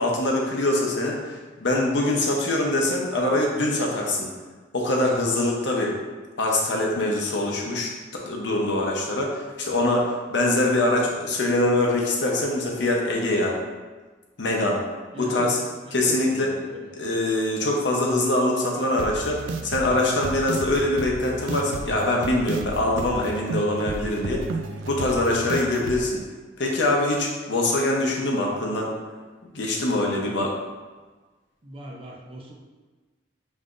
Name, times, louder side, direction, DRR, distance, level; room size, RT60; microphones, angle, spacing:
voice 1, 0.0-4.3 4.7-6.0 6.4-13.6 14.4-14.8 15.2-15.6 15.9-16.5 16.9-24.4 24.9-26.2 26.6-28.9 29.5-30.5, left 1 dB, 75° left, -1 dB, 0.8 m, -23 dB
voice 2, 15.1-15.6 15.9-16.9 30.1-30.5 31.6-32.5, equal, 30° right, -1 dB, 0.6 m, -40 dB
sound 1, 19.0-26.0, right 3 dB, 90° right, 0.3 m, -33 dB
5.4 x 3.5 x 2.5 m, 1.3 s
head